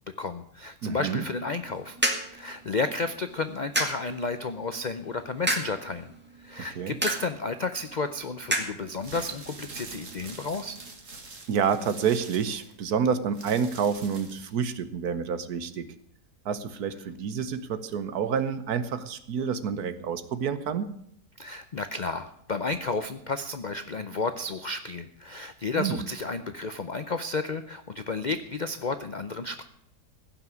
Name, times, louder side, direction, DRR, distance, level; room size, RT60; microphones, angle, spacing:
voice 1, 0.2-2.0 2.3-6.1 6.4-10.8 21.4-29.6, left 3 dB, 65° left, 10 dB, 0.4 m, -32 dB
voice 2, 0.8-1.2 6.8-7.0 11.5-15.9 16.4-20.9 25.8-26.0, right 7 dB, 70° right, 12 dB, 1.4 m, -28 dB
sound 1, 1.5-10.9, right 1 dB, 5° right, 1.8 m, -35 dB
sound 2, 9.0-14.6, right 3 dB, 50° right, 2.2 m, -45 dB
16.0 x 5.9 x 9.2 m, 0.72 s
omnidirectional pair, 1.7 m